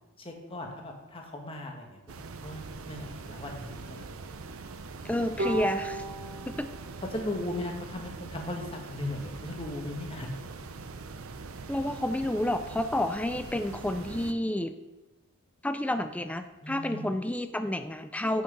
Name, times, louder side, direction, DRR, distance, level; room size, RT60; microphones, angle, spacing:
voice 1, 0.2-2.0 2.4-4.4 7.1-8.6 8.9-10.3 16.6-17.1, left 1 dB, 25° left, 2 dB, 1.3 m, -37 dB
sound 1, 2.1-14.3, right 4 dB, 75° right, 0.7 m, -43 dB
voice 2, 5.0-6.0 6.5-6.7 11.7-14.8 15.6-18.4, left 1 dB, 5° left, 9 dB, 0.4 m, -30 dB
Bowed string instrument, 5.4-8.7, right 1 dB, 50° right, 1.7 m, -37 dB
8.3 x 6.6 x 5.3 m, 1.1 s
head